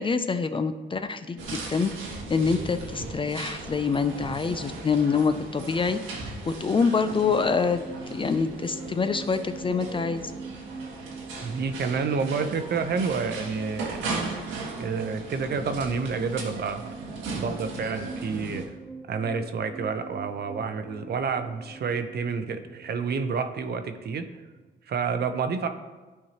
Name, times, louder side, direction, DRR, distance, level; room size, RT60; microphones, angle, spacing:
voice 1, 0.0-1.9 2.3-7.8 8.1-10.2, left 5 dB, 25° left, 10 dB, 0.4 m, -26 dB
sound 1, 1.4-18.7, right 3 dB, 90° right, 1.5 m, -37 dB
sound 2, 6.4-24.9, right 4 dB, 10° right, 1.2 m, -45 dB
voice 2, 11.4-14.2 14.8-16.9 17.3-18.6 19.1-24.3 24.9-25.7, right 5 dB, 55° right, 8 dB, 0.7 m, -29 dB
12.0 x 4.6 x 2.9 m, 1.3 s
cardioid pair, 90°, 20 cm